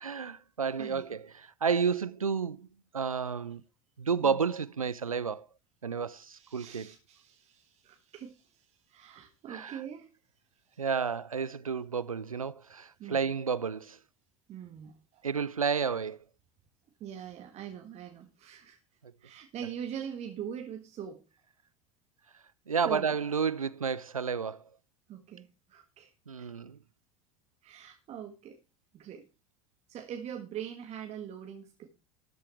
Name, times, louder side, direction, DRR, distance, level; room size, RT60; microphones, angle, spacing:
voice 1, 0.0-2.7 2.9-3.6 4.0-5.5 5.8-6.9 9.5-9.8 10.8-14.0 15.2-16.2 19.0-19.1 22.7-24.6 26.3-26.8, right 6 dB, 85° right, 0.5 m, -31 dB
voice 2, 6.3-10.1 10.6-10.8 13.0-13.3 14.5-15.3 17.0-18.8 19.2-21.2 22.8-23.1 25.1-26.1 26.4-26.5 27.6-28.6 28.9-29.3 29.9-31.9, right 9 dB, 40° right, 1.7 m, -43 dB
13.0 x 12.5 x 3.2 m
figure-of-eight pair, 75°, 17 cm